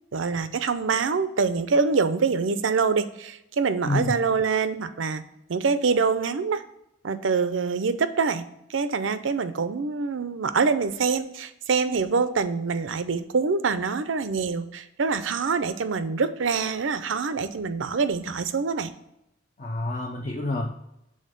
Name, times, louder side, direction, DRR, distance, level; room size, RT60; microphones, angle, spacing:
voice 1, 0.1-5.2 5.5-6.6 7.0-8.4 8.7-18.9, right 5 dB, 75° right, 12 dB, 0.5 m, -25 dB
voice 2, 19.6-20.7, left 2 dB, 40° left, 0 dB, 0.6 m, -28 dB
6.4 x 4.0 x 5.1 m, 0.83 s
head